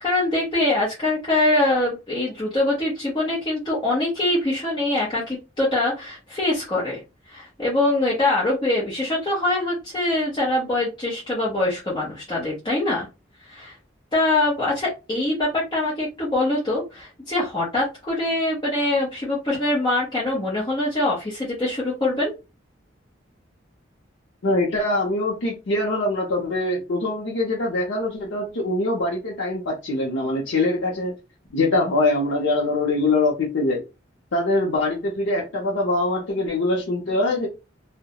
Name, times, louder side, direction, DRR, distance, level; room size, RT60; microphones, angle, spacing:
voice 1, 0.0-13.1 13.5-13.7 14.1-22.3, left 2 dB, 25° left, 0.7 m, -23 dB
voice 2, 24.4-31.2 31.5-33.8 34.3-37.5, left 2 dB, 80° left, 0.6 m, -23 dB
2.3 x 2.1 x 2.8 m
head